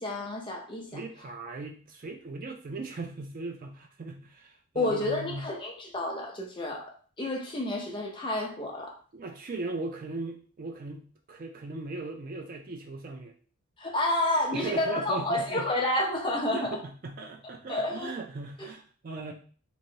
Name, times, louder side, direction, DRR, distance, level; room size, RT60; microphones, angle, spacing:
voice 1, 0.0-0.9 4.7-9.0 13.8-16.8 17.7-18.1, left 1 dB, 20° left, -1 dB, 0.6 m, -30 dB
voice 2, 0.9-5.5 9.1-11.0 11.3-13.3 14.5-15.6 16.5-19.3, right 3 dB, 40° right, 3 dB, 0.4 m, -38 dB
3.0 x 2.7 x 2.7 m, 0.41 s
head